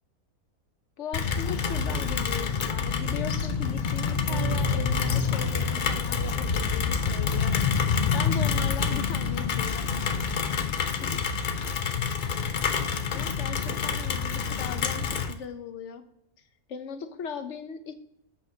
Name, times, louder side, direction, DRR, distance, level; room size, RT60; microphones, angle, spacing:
voice 1, 1.0-7.6 8.1-9.9 11.0-11.2 13.1-16.1 16.7-18.0, left 7 dB, 60° left, 9 dB, 0.9 m, -38 dB
Rain, 1.1-15.3, left 6 dB, 75° left, 0.4 m, -27 dB
sound 1, 4.3-6.9, right 7 dB, 25° right, 0.8 m, -37 dB
13.5 x 5.7 x 2.7 m, 0.76 s
omnidirectional pair, 1.6 m